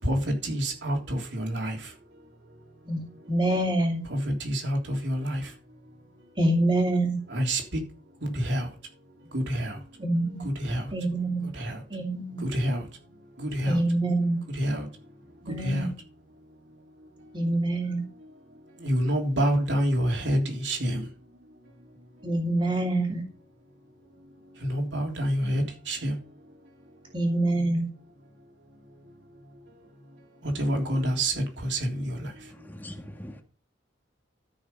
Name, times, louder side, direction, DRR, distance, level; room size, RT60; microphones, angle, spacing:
voice 1, 0.0-1.9 4.1-5.5 7.3-7.8 8.2-8.7 9.3-9.8 10.4-10.9 11.5-11.8 12.4-12.9 13.4-13.8 14.5-14.9 15.5-15.9 18.8-21.1 24.6-26.2 30.4-32.5, equal, 70° right, 3.4 m, -28 dB
voice 2, 2.9-4.0 6.4-7.2 10.0-10.4 10.9-11.5 11.9-12.4 13.7-14.4 15.4-15.9 17.3-18.0 22.2-23.2 25.4-25.6 27.1-27.9, right 1 dB, 30° right, 2.7 m, -26 dB
voice 3, 32.5-33.4, equal, 10° left, 1.6 m, -42 dB
13.5 x 6.5 x 5.5 m
head